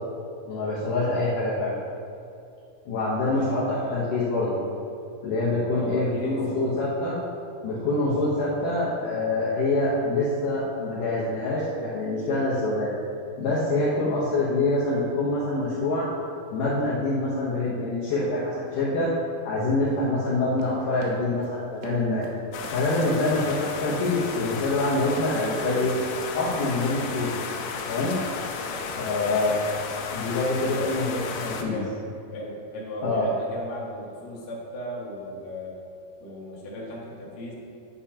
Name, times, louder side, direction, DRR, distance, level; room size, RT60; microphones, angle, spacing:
voice 1, 0.5-1.8 2.9-4.6 5.2-7.2 7.6-13.0 13.4-16.1 16.5-19.1 19.4-22.3 22.7-25.9 26.3-27.3 27.9-28.2 29.0-29.5 30.1-31.8 33.0-33.3, left 2 dB, 70° left, -7 dB, 1.9 m, -25 dB
voice 2, 3.3-4.1 5.8-6.8 8.0-8.2 13.9-14.3 23.4-23.6 28.6-29.4 30.7-31.1 31.6-32.0 32.3-35.8 36.2-37.5, left 1 dB, 55° left, -5 dB, 2.1 m, -37 dB
Run, 20.5-27.4 27.8-28.1 28.4-28.8, right 3 dB, 85° right, 3.3 m, -45 dB
sound 1, 22.5-31.6, left 5 dB, 90° left, 3.0 m, -34 dB
9.9 x 9.5 x 2.8 m, 2.5 s
omnidirectional pair, 5.2 m